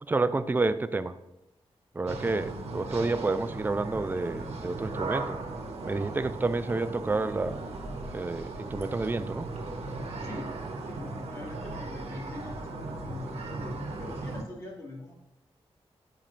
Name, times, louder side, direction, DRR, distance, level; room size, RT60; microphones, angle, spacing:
voice 1, 0.0-1.2 1.9-5.4 5.9-7.6 8.1-9.5, right 3 dB, 20° right, 11 dB, 0.3 m, -29 dB
sound 1, 2.1-14.4, right 3 dB, 85° right, 0.9 m, -37 dB
voice 2, 10.2-15.1, left 1 dB, 30° left, -3 dB, 1.8 m, -42 dB
8.9 x 5.5 x 2.5 m, 0.92 s
wide cardioid pair, 105°, 10 cm